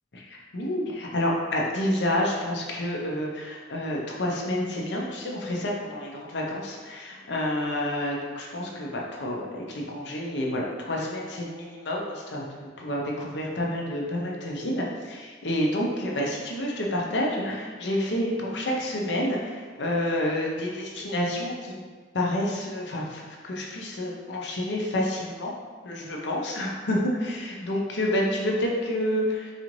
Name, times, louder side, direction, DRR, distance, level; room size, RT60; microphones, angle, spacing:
voice 1, 0.1-21.8 22.1-25.5 25.8-29.5, left 1 dB, 75° left, -2 dB, 0.7 m, -29 dB
4.1 x 2.5 x 3.1 m, 1.5 s
head